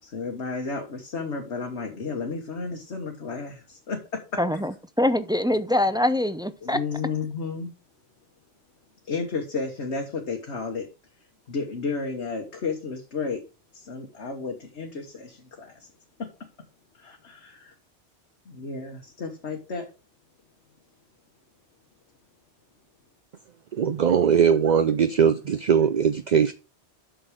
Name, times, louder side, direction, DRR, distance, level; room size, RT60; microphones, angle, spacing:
voice 1, 0.0-4.2 6.6-7.7 9.1-10.9 11.5-13.4 13.7-15.9 16.2-16.3 17.0-17.7 18.5-19.9, left 4 dB, 85° left, 1.6 m, -32 dB
voice 2, 4.4-6.8, left 1 dB, 5° right, 0.3 m, -24 dB
voice 3, 23.7-26.5, right 7 dB, 50° right, 0.6 m, -20 dB
7.8 x 6.2 x 5.0 m
omnidirectional pair, 1.1 m